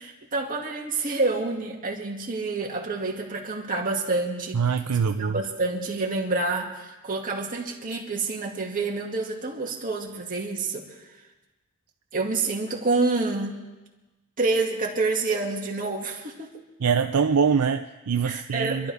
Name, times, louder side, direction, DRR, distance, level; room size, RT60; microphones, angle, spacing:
voice 1, 0.0-4.6 5.2-10.8 12.1-13.6 14.4-16.5 18.2-18.9, right 3 dB, 40° right, -1 dB, 2.3 m, -28 dB
voice 2, 4.5-5.4 16.8-18.9, right 6 dB, 85° right, 7 dB, 0.5 m, -23 dB
27.0 x 12.5 x 3.6 m, 1.1 s
head